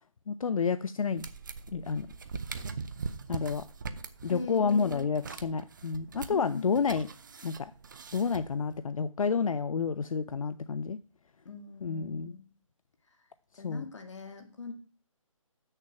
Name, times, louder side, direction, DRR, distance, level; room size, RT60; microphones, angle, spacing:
voice 1, 0.3-1.3 1.7-2.1 3.3-3.7 4.2-7.1 7.4-7.7 8.1-11.0 11.8-12.4 13.6-13.8, left 5 dB, 75° left, 14 dB, 0.5 m, -30 dB
sound 1, 1.2-8.8, right 5 dB, 35° right, 0.6 m, -42 dB
voice 2, 4.3-5.1 6.3-6.8 11.5-12.5 13.6-14.7, left 4 dB, 60° left, 5 dB, 2.0 m, -41 dB
7.4 x 6.6 x 5.7 m, 0.37 s
hypercardioid pair, 165°, 18 cm